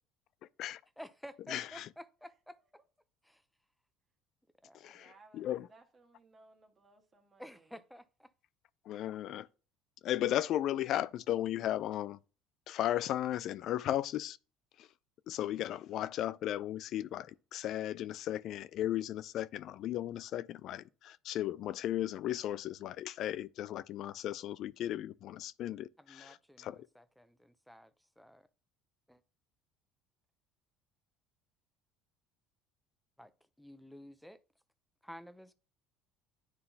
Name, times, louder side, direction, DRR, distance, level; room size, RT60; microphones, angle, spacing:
voice 1, 1.0-2.6 3.2-3.4 4.6-5.0 7.4-8.3 26.0-28.5 29.1-29.2 33.2-33.3 33.6-34.4 35.0-35.5, equal, ahead, 0.6 m, -52 dB
voice 2, 1.5-1.9 4.7-5.7 8.8-9.5 10.0-12.2 12.7-14.4 14.8-14.9 15.3-26.9, left 12 dB, 60° left, 0.4 m, -36 dB
voice 3, 4.9-7.8, right 3 dB, 30° right, 1.5 m, -62 dB
9.6 x 3.8 x 2.8 m
supercardioid pair, 100°, 0 cm